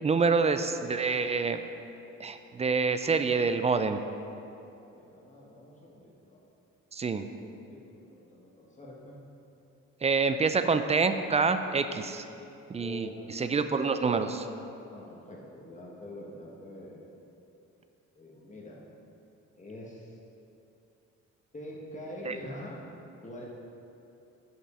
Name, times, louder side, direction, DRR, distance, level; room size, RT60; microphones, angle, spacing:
voice 1, 0.0-1.6 2.2-4.0 6.9-7.3 10.0-12.2 12.7-14.5 22.2-22.4, right 4 dB, 20° right, 9 dB, 0.4 m, -27 dB
voice 2, 4.8-6.4 7.4-9.2 12.8-13.4 14.8-17.1 18.1-18.8 19.6-20.2 21.5-22.8 23.2-23.4, left 1 dB, 25° left, -4 dB, 1.2 m, -45 dB
7.6 x 5.3 x 4.8 m, 2.8 s
cardioid pair, 90°, 30 cm